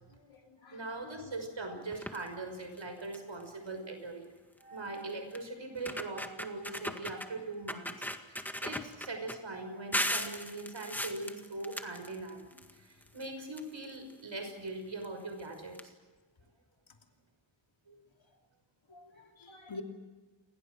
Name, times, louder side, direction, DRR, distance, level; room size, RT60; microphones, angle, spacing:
voice 1, 0.1-1.1 18.9-19.8, left 3 dB, 70° left, 3 dB, 3.0 m, -48 dB
voice 2, 0.7-4.2 4.6-15.9 17.9-18.0, right 2 dB, 65° right, 5 dB, 6.2 m, -41 dB
sound 1, 1.9-2.3 2.8-2.9 3.1-3.4 4.6-4.7 5.3-5.4 5.8-7.3 7.7-9.4 9.9-12.7 13.0-14.1 15.0-15.1 15.4-15.5 15.7-15.8, equal, 5° left, 1.8 m, -37 dB
29.0 x 21.5 x 6.3 m, 1.3 s
wide cardioid pair, 90°, 48 cm